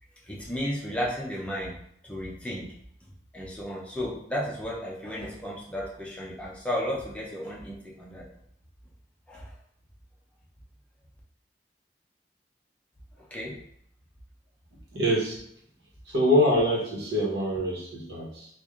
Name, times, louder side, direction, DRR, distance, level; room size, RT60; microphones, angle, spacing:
voice 1, 0.2-1.7 2.0-2.7 3.3-8.2 9.3-9.5 13.2-13.5, equal, 5° left, -4 dB, 0.7 m, -33 dB
voice 2, 14.9-15.4 16.1-18.5, equal, 70° right, -4 dB, 1.2 m, -25 dB
3.2 x 2.5 x 3.7 m, 0.70 s
head